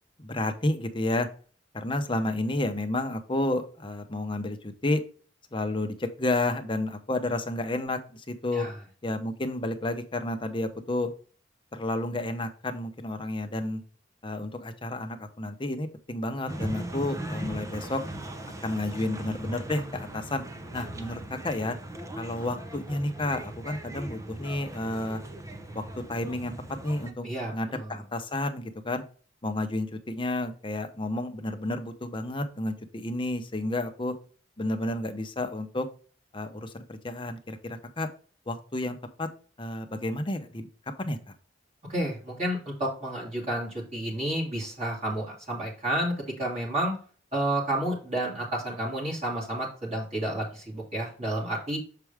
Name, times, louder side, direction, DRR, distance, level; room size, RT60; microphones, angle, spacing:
voice 1, 0.2-1.3 1.7-5.0 5.5-8.7 9.0-11.1 11.7-13.8 14.2-18.0 18.6-20.4 20.7-21.8 22.2-25.2 25.7-25.8 26.1-26.5 26.8-29.0 29.4-34.1 34.6-35.9 36.3-38.1 38.5-39.3 39.6-40.7 41.0-41.2, left 1 dB, 25° left, 6 dB, 0.9 m, -31 dB
sound 1, 16.5-27.1, right 1 dB, 15° right, 0.7 m, -39 dB
voice 2, 27.2-28.0 41.9-46.1 46.4-46.9 47.3-51.8, right 1 dB, 35° right, -4 dB, 2.6 m, -30 dB
6.8 x 4.7 x 3.5 m, 0.40 s
head